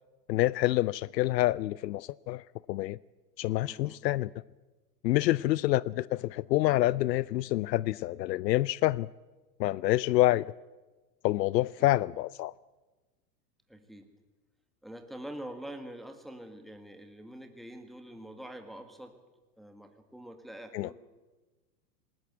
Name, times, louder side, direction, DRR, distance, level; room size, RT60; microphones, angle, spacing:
voice 1, 0.3-3.0 3.4-4.3 5.0-9.1 9.6-10.5 11.2-12.5 20.7-20.9, left 16 dB, 80° left, 0.6 m, -27 dB
voice 2, 3.6-4.0 5.2-5.6 11.8-11.9 13.7-14.1 14.8-19.2 19.6-20.9, right 1 dB, ahead, 1.9 m, -45 dB
19.5 x 19.0 x 8.2 m
hypercardioid pair, 120°, 49 cm